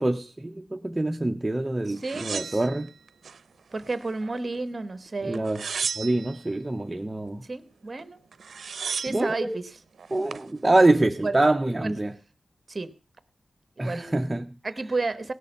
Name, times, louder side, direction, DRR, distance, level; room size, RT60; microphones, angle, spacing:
voice 1, 0.0-2.9 5.2-5.7 6.0-7.5 9.1-9.6 10.1-12.2 13.8-14.5, right 2 dB, 15° right, 0.5 m, -25 dB
voice 2, 2.0-2.6 3.7-5.4 7.4-8.2 9.0-9.7 11.2-11.4 11.8-11.9 12.7-12.9 13.8-14.2 14.6-15.3, right 3 dB, 30° right, 0.9 m, -31 dB
sound 1, 2.0-3.4 3.8-4.6 5.3-6.4 8.0-8.1 8.3-9.3 10.0-10.5, right 6 dB, 75° right, 0.5 m, -34 dB
18.0 x 6.6 x 5.1 m
wide cardioid pair, 170°, 0 cm